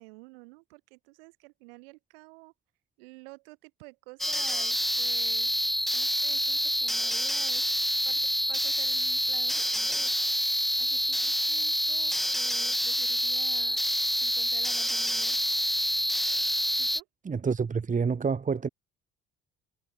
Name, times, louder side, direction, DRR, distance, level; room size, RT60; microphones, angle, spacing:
voice 1, 0.0-2.5 3.0-5.5 5.9-10.3 10.8-13.8 14.2-15.4 16.8-17.1, right 27 dB, 75° right, 7.5 m, -50 dB
sound 1, 4.2-17.0, equal, ahead, 1.1 m, -27 dB
voice 2, 17.2-18.7, right 5 dB, 25° right, 1.4 m, -28 dB
figure-of-eight pair, 50°, 29 cm